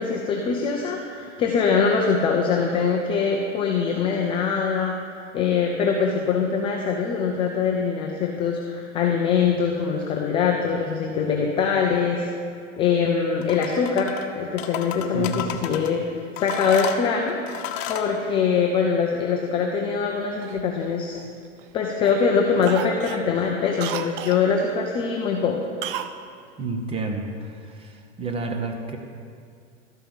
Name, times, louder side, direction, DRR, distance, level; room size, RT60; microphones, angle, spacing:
voice 1, 0.0-4.9 5.3-12.3 12.8-17.4 17.9-21.2 21.7-25.6, left 6 dB, 15° left, 1 dB, 0.4 m, -23 dB
sound 1, 13.4-14.3 14.6-15.9 16.4-18.1, left 10 dB, 55° left, 1.0 m, -32 dB
voice 2, 15.1-15.5 26.6-29.0, right 3 dB, 15° right, 4 dB, 0.9 m, -30 dB
Cough, 20.4-21.7 22.0-22.3 22.6-24.4 25.8-26.2 26.4-26.5, right 10 dB, 45° right, 0.6 m, -34 dB
12.5 x 5.5 x 7.0 m, 2.3 s
hypercardioid pair, 130°, 38 cm